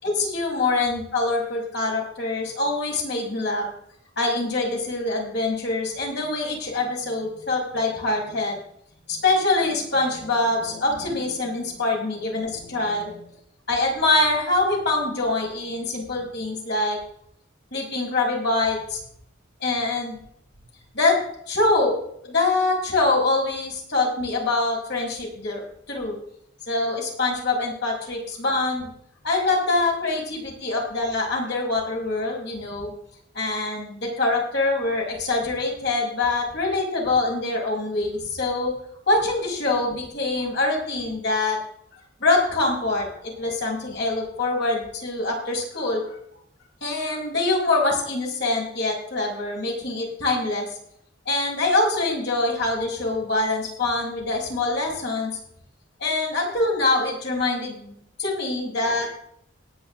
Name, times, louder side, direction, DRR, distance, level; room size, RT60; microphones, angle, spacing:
voice 1, 0.0-3.7 4.2-8.6 9.1-13.3 13.7-17.0 17.7-19.0 19.6-20.2 20.9-25.6 25.9-26.2 26.7-28.9 29.2-32.9 33.3-38.7 39.1-41.6 42.2-46.2 46.8-50.7 51.3-55.3 56.0-57.9 58.2-59.1, left 2 dB, 60° left, -1 dB, 5.6 m, -24 dB
18.5 x 10.0 x 3.7 m, 0.68 s
head